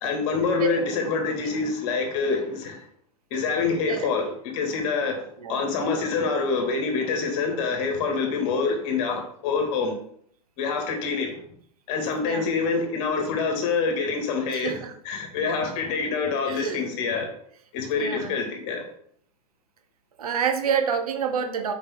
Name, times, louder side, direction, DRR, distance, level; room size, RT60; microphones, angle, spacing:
voice 1, 0.0-2.9 3.3-10.0 10.6-11.3 11.9-14.8 15.0-17.3 17.7-18.9, left 4 dB, 50° left, 3 dB, 1.8 m, -26 dB
voice 2, 14.5-14.9 16.5-16.8 18.0-18.4 20.2-21.7, right 7 dB, 75° right, 7 dB, 0.9 m, -28 dB
5.3 x 5.0 x 3.6 m, 0.64 s
hypercardioid pair, 105°, 19 cm